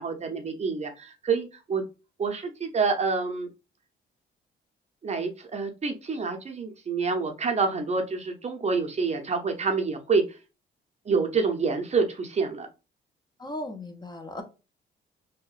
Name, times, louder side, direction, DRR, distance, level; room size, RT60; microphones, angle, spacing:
voice 1, 0.0-1.8 2.2-3.5 5.0-10.2 11.1-12.7, right 4 dB, 35° right, 4 dB, 0.6 m, -27 dB
voice 2, 13.4-14.4, left 1 dB, 20° left, 4 dB, 0.6 m, -36 dB
2.8 x 2.2 x 2.3 m, 0.30 s
cardioid pair, 90°, 20 cm